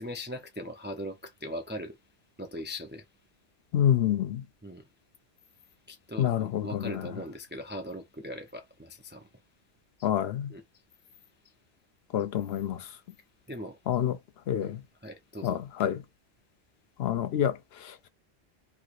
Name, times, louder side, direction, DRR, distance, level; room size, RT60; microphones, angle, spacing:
voice 1, 0.0-2.0 2.4-3.0 4.6-4.9 5.9-9.3 10.0-10.1 10.5-10.6 13.5-13.8 14.5-14.7 15.0-15.6, equal, 15° right, 0.3 m, -40 dB
voice 2, 3.7-4.4 6.2-7.0 10.0-10.5 12.1-12.8 13.9-14.2 14.5-14.8 15.4-16.0 17.0-18.1, left 10 dB, 70° left, 0.8 m, -28 dB
3.1 x 2.8 x 2.4 m
omnidirectional pair, 1.1 m